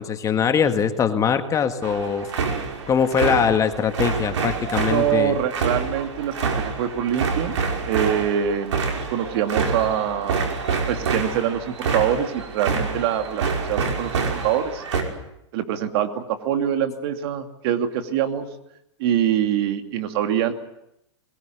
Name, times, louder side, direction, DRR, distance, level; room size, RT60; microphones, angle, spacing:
voice 1, 0.0-2.3 2.9-5.4, left 7 dB, 20° left, 8 dB, 1.9 m, -22 dB
sound 1, 1.8-15.0, right 5 dB, 80° right, 5.7 m, -27 dB
voice 2, 4.9-7.6 7.9-8.8 9.1-10.5 10.9-14.8 15.5-18.5 19.0-20.5, right 10 dB, 55° right, 7 dB, 2.7 m, -24 dB
22.0 x 21.5 x 9.4 m, 0.83 s
hypercardioid pair, 130°, 15 cm